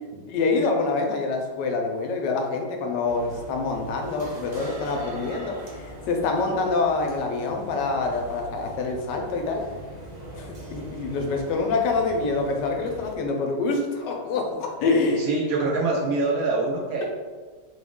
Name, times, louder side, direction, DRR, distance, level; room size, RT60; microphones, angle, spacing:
voice 1, 0.3-9.7 10.3-15.3, left 3 dB, 80° left, 2 dB, 1.2 m, -26 dB
sound 1, 3.0-13.1, right 1 dB, 90° right, 0.3 m, -41 dB
voice 2, 15.2-17.0, right 3 dB, 70° right, -1 dB, 0.9 m, -25 dB
3.7 x 2.3 x 3.5 m, 1.4 s
omnidirectional pair, 1.8 m